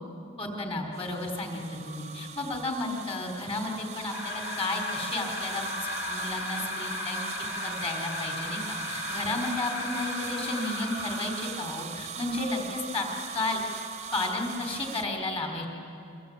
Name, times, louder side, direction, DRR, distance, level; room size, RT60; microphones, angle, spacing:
voice 1, 0.4-7.2 7.6-13.1 13.3-13.6 14.1-15.7, left 2 dB, 25° left, 2 dB, 4.3 m, -33 dB
sound 1, 0.9-15.0, right 6 dB, 35° right, 0.9 m, -40 dB
sound 2, 4.1-11.7, left 3 dB, 60° left, 4.6 m, -36 dB
27.5 x 24.0 x 8.9 m, 2.6 s
head